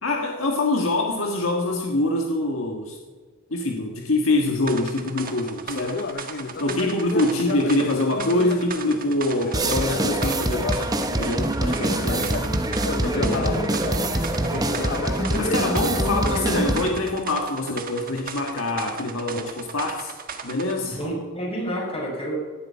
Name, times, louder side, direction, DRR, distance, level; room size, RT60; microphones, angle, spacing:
voice 1, 0.0-3.0 3.5-6.0 6.6-10.8 11.1-12.4 13.0-13.6 15.3-20.1 20.4-21.0, left 2 dB, 65° left, 1 dB, 1.6 m, -25 dB
sound 1, 4.7-20.8, right 6 dB, 40° right, 1.5 m, -37 dB
Conversation, 5.7-11.4 11.9-16.8, left 4 dB, 50° left, 0.6 m, -32 dB
sound 2, 9.5-16.9, right 1 dB, 15° right, 1.0 m, -25 dB
voice 2, 14.3-14.8 20.8-22.3, equal, 25° left, -2 dB, 6.1 m, -31 dB
18.0 x 11.5 x 5.7 m, 1.4 s
head